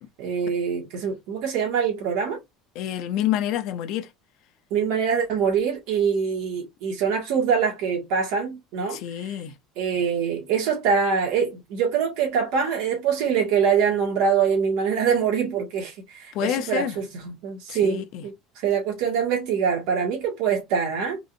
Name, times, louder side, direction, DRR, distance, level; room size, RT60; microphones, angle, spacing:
voice 1, 0.2-2.4 4.7-9.0 9.8-21.2, right 6 dB, 75° right, 1.7 m, -24 dB
voice 2, 2.7-4.1 8.9-9.5 16.3-17.0 17.7-18.2, left 11 dB, 65° left, 0.6 m, -28 dB
3.9 x 2.5 x 2.5 m
supercardioid pair, 115°, 0 cm